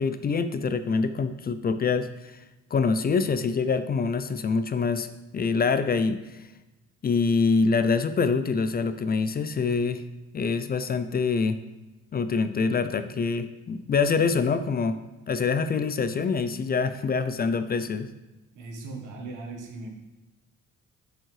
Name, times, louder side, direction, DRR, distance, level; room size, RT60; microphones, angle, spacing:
voice 1, 0.0-2.4 2.7-6.2 7.0-10.0 10.3-11.6 12.1-15.0 15.3-18.1, left 5 dB, 30° left, 11 dB, 0.4 m, -25 dB
voice 2, 18.5-19.9, right 3 dB, 85° right, 1 dB, 1.4 m, -38 dB
7.2 x 5.3 x 3.2 m, 1.1 s
cardioid pair, 90°, 30 cm